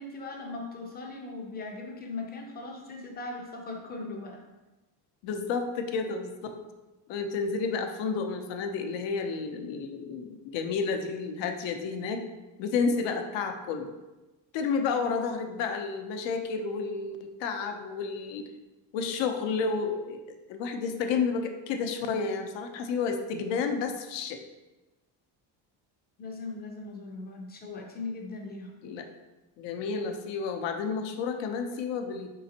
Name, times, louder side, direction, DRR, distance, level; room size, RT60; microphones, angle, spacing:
voice 1, 0.0-4.4 26.2-28.7, left 3 dB, 20° left, 1 dB, 0.5 m, -39 dB
voice 2, 5.2-6.5 7.1-12.2 12.6-13.9 14.5-18.4 18.9-20.2 20.5-24.4 28.8-29.1 29.6-32.3, left 5 dB, 75° left, 5 dB, 0.7 m, -31 dB
5.1 x 3.8 x 2.8 m, 1.1 s
cardioid pair, 175°, 44 cm